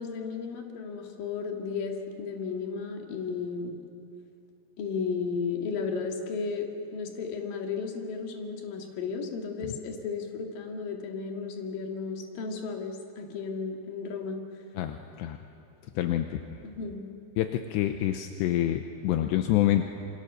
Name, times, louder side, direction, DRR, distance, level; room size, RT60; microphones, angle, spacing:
voice 1, 0.0-3.8 4.8-14.4 16.7-17.1, left 5 dB, 55° left, 2 dB, 3.4 m, -34 dB
voice 2, 14.8-15.4 16.0-16.4 17.4-19.9, left 12 dB, 80° left, 6 dB, 2.9 m, -27 dB
28.0 x 25.0 x 6.8 m, 2.6 s
omnidirectional pair, 5.3 m